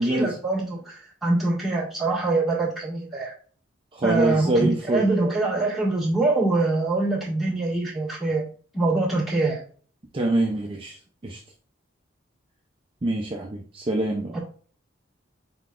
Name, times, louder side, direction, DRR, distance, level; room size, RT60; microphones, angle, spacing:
voice 1, 0.0-3.3 4.0-8.4 8.7-9.6 14.3-14.4, right 2 dB, ahead, -7 dB, 1.8 m, -24 dB
voice 2, 3.9-5.1 10.1-10.9 11.2-11.4 13.0-14.4, right 2 dB, 25° right, 0 dB, 0.5 m, -24 dB
4.5 x 3.9 x 2.4 m, 0.44 s
head